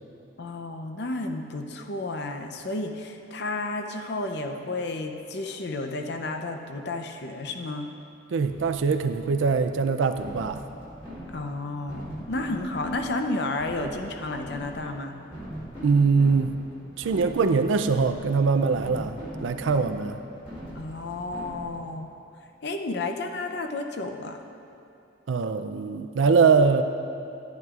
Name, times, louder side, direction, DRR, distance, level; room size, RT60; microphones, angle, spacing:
voice 1, 0.4-7.9 11.3-15.2 20.8-22.1 22.6-24.4, left 2 dB, 55° left, 5 dB, 0.6 m, -32 dB
voice 2, 8.3-10.6 15.8-16.5 17.0-20.2 25.3-26.8, right 5 dB, 75° right, 8 dB, 0.4 m, -22 dB
sound 1, 8.5-22.0, equal, 25° left, 1.8 m, -41 dB
11.0 x 10.5 x 2.4 m, 2.9 s
head